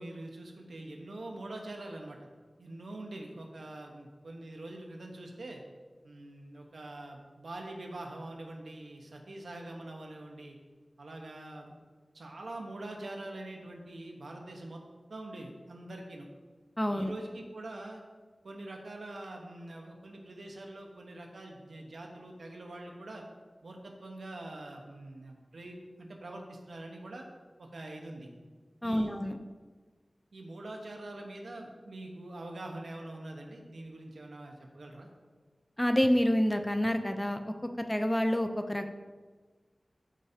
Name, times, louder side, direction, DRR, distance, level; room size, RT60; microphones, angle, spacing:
voice 1, 0.0-2.2 2.6-5.6 6.0-10.6 11.0-11.7 12.1-14.8 15.1-16.3 16.9-18.0 18.4-23.2 23.6-27.3 27.6-28.3 28.8-29.1 30.3-35.1, right 1 dB, 85° right, 1 dB, 1.2 m, -44 dB
voice 2, 16.8-17.1 28.8-29.4 35.8-37.5 37.9-38.9, equal, 10° left, 6 dB, 0.6 m, -28 dB
12.5 x 5.2 x 2.8 m, 1.4 s
wide cardioid pair, 65°, 0 cm